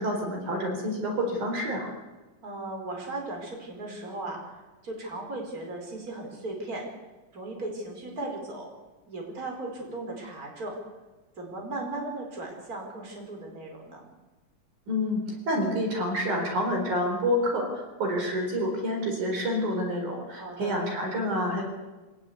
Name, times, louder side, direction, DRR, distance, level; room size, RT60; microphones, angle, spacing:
voice 1, 0.0-1.9 14.9-15.2 15.5-21.6, equal, 65° right, 2 dB, 5.8 m, -28 dB
voice 2, 2.4-6.8 7.3-8.7 9.1-10.8 11.4-14.0 20.3-20.8, right 2 dB, 25° right, 1 dB, 5.4 m, -37 dB
25.5 x 18.0 x 8.2 m, 1.2 s
omnidirectional pair, 3.7 m